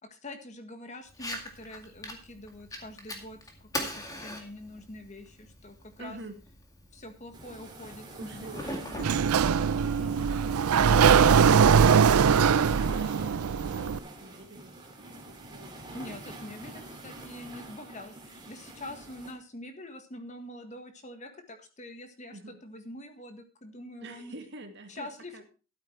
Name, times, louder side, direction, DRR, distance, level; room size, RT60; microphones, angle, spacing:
voice 1, 0.0-6.2 6.9-8.5 10.0-10.5 15.9-24.3 24.9-25.4, left 1 dB, 30° left, 7 dB, 1.6 m, -45 dB
Fire, 1.1-10.1, left 1 dB, 15° left, 2.0 m, -42 dB
voice 2, 6.0-6.4 8.1-14.8 15.1-15.8 22.3-22.6 24.0-25.4, right 2 dB, 50° right, 5 dB, 2.1 m, -47 dB
sound 1, 7.3-19.3, right 1 dB, 20° right, 2.7 m, -45 dB
Sliding door, 9.0-14.0, right 6 dB, 85° right, 0.5 m, -21 dB
13.0 x 8.8 x 4.5 m, 0.34 s
head